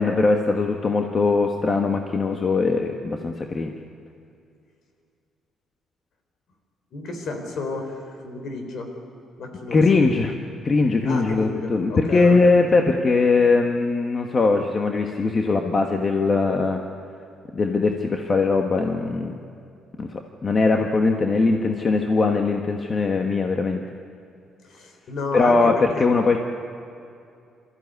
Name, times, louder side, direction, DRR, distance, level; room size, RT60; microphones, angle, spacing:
voice 1, 0.0-3.7 9.7-10.3 10.6-16.8 17.5-19.4 20.0-23.8 25.3-26.4, left 3 dB, 35° left, 3 dB, 1.4 m, -20 dB
voice 2, 6.9-7.9 8.2-8.9 9.4-10.0 11.0-12.3 24.8-26.0, left 3 dB, 60° left, 4 dB, 4.1 m, -31 dB
23.0 x 15.0 x 9.6 m, 2.5 s
cardioid pair, 105°, 0 cm